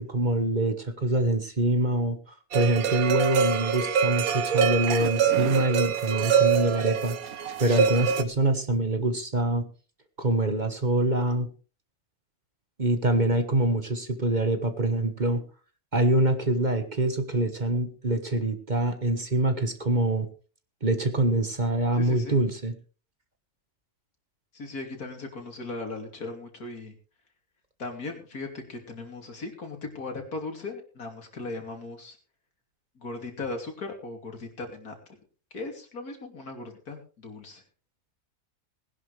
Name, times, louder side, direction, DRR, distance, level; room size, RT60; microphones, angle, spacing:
voice 1, 0.0-2.2 2.5-7.2 7.6-9.7 10.2-11.5 12.8-15.4 15.9-20.3 20.8-22.7, right 2 dB, 30° right, 8 dB, 1.4 m, -25 dB
sound 1, 2.5-8.2, right 7 dB, 70° right, 1.4 m, -25 dB
voice 2, 22.0-22.4 24.5-27.0 27.8-32.2 32.9-35.0 35.5-37.6, left 3 dB, 80° left, 3 dB, 3.3 m, -38 dB
19.5 x 11.0 x 3.3 m, 0.37 s
omnidirectional pair, 1.6 m